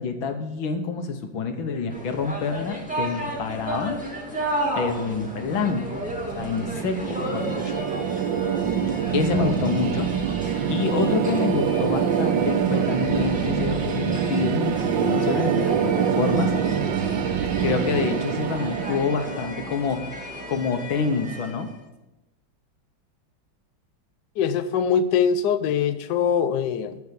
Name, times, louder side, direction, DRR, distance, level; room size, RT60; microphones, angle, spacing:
voice 1, 0.0-4.0 4.8-6.1 6.3-7.7 9.1-10.1 10.7-16.5 17.6-21.7, left 5 dB, 85° left, 6 dB, 1.8 m, -27 dB
sound 1, 1.9-21.7, equal, 5° right, 1.9 m, -34 dB
sound 2, 5.3-20.3, right 8 dB, 75° right, 1.3 m, -25 dB
voice 2, 24.4-27.0, left 7 dB, 70° left, 9 dB, 1.2 m, -22 dB
13.5 x 4.8 x 6.9 m, 0.98 s
omnidirectional pair, 2.1 m